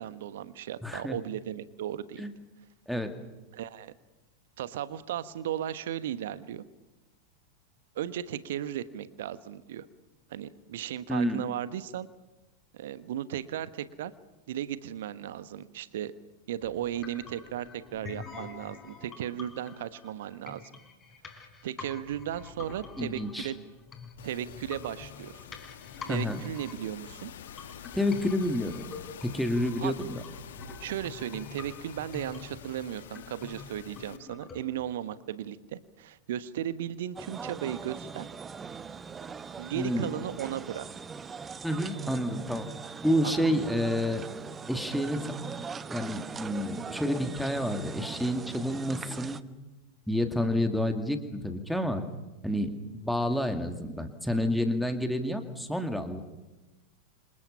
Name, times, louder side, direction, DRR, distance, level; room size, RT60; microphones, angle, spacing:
voice 1, 0.0-2.2 3.5-3.9 4.6-6.6 7.9-9.8 10.3-12.1 12.7-14.1 14.5-16.1 16.5-20.6 21.3-23.5 24.2-25.4 26.0-27.3 29.8-30.0 30.8-38.3 39.6-40.9 43.2-43.7, right 11 dB, 55° right, 14 dB, 1.3 m, -36 dB
voice 2, 0.8-1.2 2.2-2.3 2.9-3.1 11.1-11.4 23.0-23.5 26.1-26.4 27.9-28.8 29.2-30.2 39.7-40.1 41.6-42.7 43.0-44.2 44.7-45.3 45.9-49.4 50.1-52.0 52.4-56.2, left 1 dB, ahead, 6 dB, 2.4 m, -29 dB
sound 1, 16.6-34.6, left 5 dB, 20° left, 5.1 m, -47 dB
sound 2, 24.2-34.2, left 10 dB, 60° left, 1.3 m, -48 dB
sound 3, 37.2-49.4, right 5 dB, 20° right, 0.9 m, -41 dB
29.0 x 26.5 x 5.7 m, 1.1 s
figure-of-eight pair, 90°, 0 cm